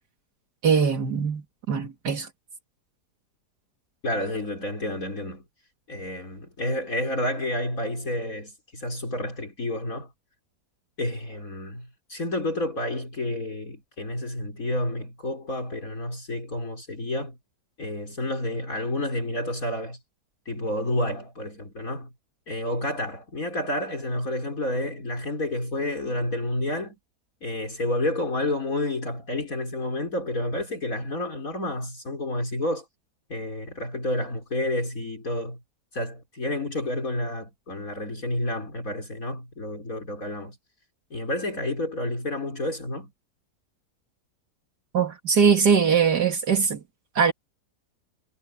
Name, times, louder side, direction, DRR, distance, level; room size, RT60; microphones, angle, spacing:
voice 1, 0.6-2.3 44.9-46.8 47.1-47.3, right 6 dB, 80° right, 3.0 m, -21 dB
voice 2, 4.0-5.4 5.9-10.1 11.0-17.4 17.8-20.0 20.4-22.1 22.5-27.0 27.4-32.8 33.3-35.6 35.9-40.6 41.1-43.1, left 1 dB, 55° left, 5.0 m, -30 dB
omnidirectional pair, 1.7 m